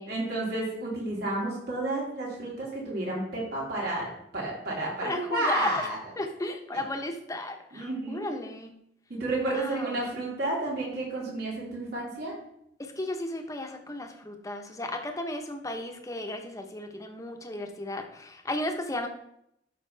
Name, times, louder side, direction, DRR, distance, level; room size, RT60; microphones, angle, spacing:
voice 1, 0.1-6.0 6.7-6.8 7.7-8.3 9.1-12.3, right 2 dB, 65° right, -4 dB, 3.5 m, -31 dB
voice 2, 5.0-5.9 6.2-8.7 9.5-9.9 12.8-19.1, left 1 dB, 20° left, 4 dB, 1.0 m, -34 dB
12.5 x 5.6 x 3.4 m, 0.75 s
head